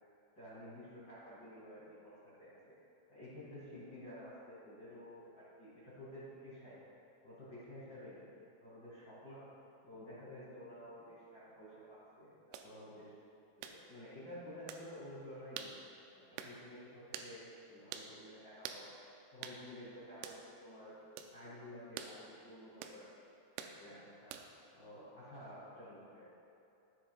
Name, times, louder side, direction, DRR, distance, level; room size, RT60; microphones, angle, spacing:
voice 1, 0.3-2.7 3.1-6.8 7.2-8.3 8.6-9.4 9.8-13.2 13.6-15.8 16.1-18.9 19.3-21.0 21.3-23.0 23.7-24.3 24.7-26.3, left 1 dB, 45° left, -11 dB, 1.3 m, -52 dB
sound 1, 12.5-12.7 13.6-13.8 14.7-14.9 15.6-15.8 16.4-16.6 17.1-17.3 17.9-18.1 18.6-18.8 19.4-19.6 20.2-20.4 21.2-21.3 22.0-22.2 22.8-23.0 23.6-23.8 24.3-24.6, right 9 dB, 90° right, 3.1 m, -46 dB
16.0 x 6.8 x 2.3 m, 2.8 s
omnidirectional pair, 5.5 m